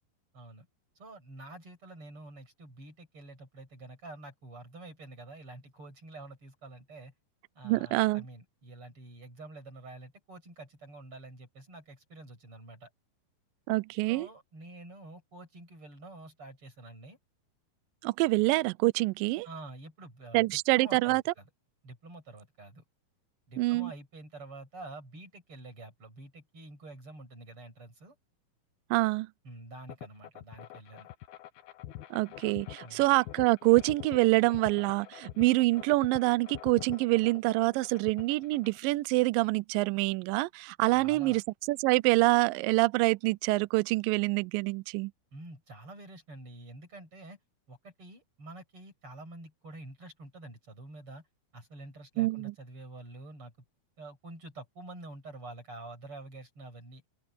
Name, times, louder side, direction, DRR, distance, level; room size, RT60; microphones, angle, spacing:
voice 1, 0.3-0.7 1.0-7.1 7.5-12.9 14.1-17.2 19.4-21.4 21.8-22.8 23.5-28.2 29.4-31.1 32.8-33.1 40.9-41.4 45.3-47.4 47.7-51.3 51.5-53.5 54.0-57.0, right 2 dB, 35° right, 7.7 m, -48 dB
voice 2, 7.6-8.2 13.7-14.3 18.0-19.5 20.3-21.2 23.6-23.9 28.9-29.3 32.1-41.4 41.7-45.1 52.2-52.5, right 22 dB, 80° right, 2.1 m, -26 dB
sound 1, 29.9-38.8, left 14 dB, 85° left, 3.2 m, -45 dB
open air
omnidirectional pair, 4.3 m